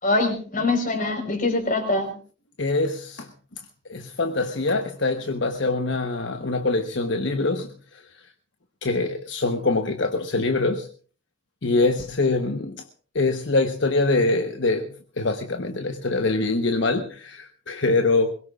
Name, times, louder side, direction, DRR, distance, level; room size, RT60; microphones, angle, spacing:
voice 1, 0.0-2.2, left 2 dB, 40° left, 4.5 m, -23 dB
voice 2, 2.6-3.3 3.9-7.7 8.8-10.9 11.6-12.8 13.1-18.3, left 3 dB, 65° left, 1.1 m, -24 dB
22.5 x 21.0 x 2.4 m
head